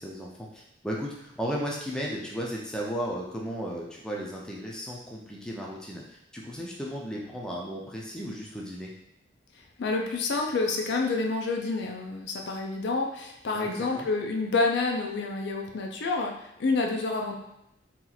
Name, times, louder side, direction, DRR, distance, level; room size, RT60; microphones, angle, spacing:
voice 1, 0.0-8.9 13.5-14.1, equal, 5° left, -3 dB, 0.4 m, -35 dB
voice 2, 9.8-17.3, left 3 dB, 65° left, 2 dB, 0.4 m, -28 dB
2.8 x 2.4 x 3.9 m, 0.85 s
head